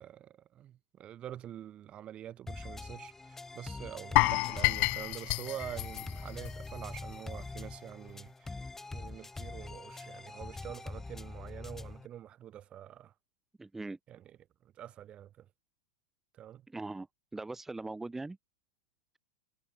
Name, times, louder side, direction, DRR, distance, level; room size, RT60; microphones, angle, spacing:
voice 1, 0.0-8.6 8.9-13.1 14.1-15.5 16.3-16.6, right 11 dB, 30° right, 2.9 m, -46 dB
sound 1, 2.5-12.1, left 3 dB, 10° left, 2.5 m, -44 dB
sound 2, 4.2-7.2 7.4-7.6 8.1-8.2, left 26 dB, 45° left, 0.7 m, -30 dB
voice 2, 13.6-14.0 16.7-17.1 17.3-18.4, right 2 dB, 10° right, 1.4 m, -40 dB
figure-of-eight pair, 95°, 3 cm